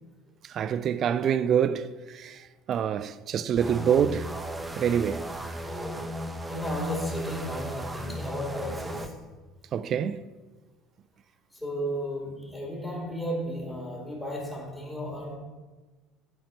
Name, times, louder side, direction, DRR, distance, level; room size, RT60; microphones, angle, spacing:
voice 1, 0.5-2.4 2.7-4.3 4.8-5.2 9.7-10.2, right 8 dB, 45° right, 0.4 m, -26 dB
sound 1, 3.6-9.1, right 1 dB, 10° right, 0.8 m, -36 dB
voice 2, 5.6-6.1 6.5-9.2 11.6-15.4, equal, 20° left, 2.7 m, -34 dB
7.9 x 4.5 x 6.3 m
hypercardioid pair, 70°, 0 cm